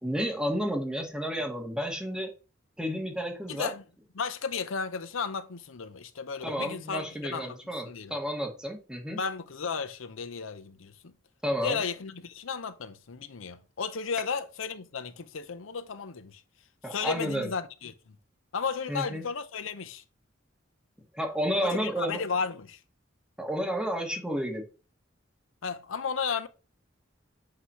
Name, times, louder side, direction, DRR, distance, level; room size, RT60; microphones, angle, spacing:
voice 1, 0.0-2.3 2.8-3.7 6.4-9.2 11.4-11.8 16.8-17.5 18.9-19.2 21.1-22.2 23.4-24.7, equal, 5° right, 1.6 m, -31 dB
voice 2, 3.5-3.8 4.2-7.6 7.8-8.1 9.1-11.1 11.6-16.4 16.9-17.9 18.5-20.0 21.6-22.8 25.6-26.5, left 5 dB, 90° left, 0.7 m, -34 dB
8.1 x 2.9 x 5.7 m
head